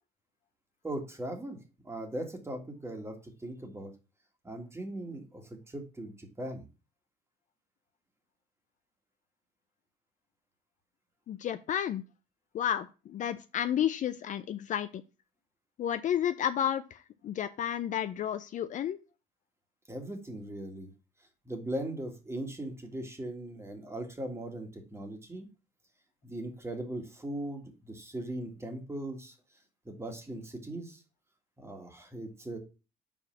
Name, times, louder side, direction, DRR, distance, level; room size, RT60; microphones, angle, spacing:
voice 1, 0.8-1.6 1.8-3.9 4.4-6.7 19.9-20.9 21.5-25.5 26.2-29.4 29.9-31.0 31.6-32.6, right 1 dB, 15° right, 4 dB, 1.8 m, -39 dB
voice 2, 11.3-12.0 12.5-15.0 15.8-19.0, left 10 dB, 50° left, 11 dB, 0.5 m, -31 dB
5.3 x 4.8 x 5.8 m, 0.32 s
cardioid pair, 110°, 17 cm